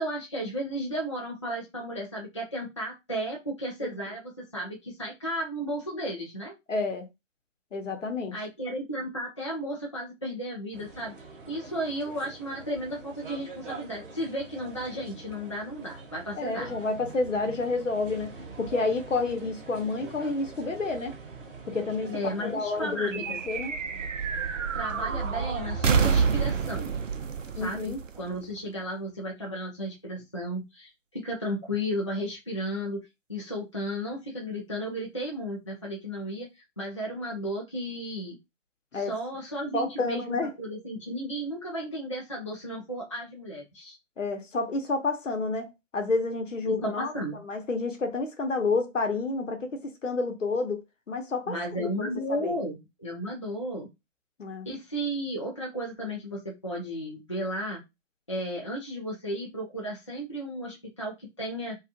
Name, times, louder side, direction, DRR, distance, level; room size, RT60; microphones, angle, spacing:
voice 1, 0.0-6.5 8.3-11.1 11.5-16.7 22.1-23.4 24.7-27.0 27.6-33.0 33.3-36.5 36.8-38.4 38.9-44.0 46.6-47.4 51.5-53.9 54.7-57.8 58.3-61.8, equal, 25° left, 0.4 m, -34 dB
voice 2, 6.7-7.0 7.7-8.3 16.3-18.3 18.6-21.2 21.7-22.1 22.4-23.7 27.6-28.0 38.9-39.1 39.7-40.5 44.2-47.1 47.4-50.8 51.1-52.6 54.4-54.7, left 3 dB, 75° left, 0.9 m, -29 dB
sound 1, 10.7-26.8, right 3 dB, 45° right, 0.7 m, -44 dB
sound 2, 23.1-28.8, right 6 dB, 75° right, 0.5 m, -28 dB
2.4 x 2.4 x 2.6 m
figure-of-eight pair, 140°, 39 cm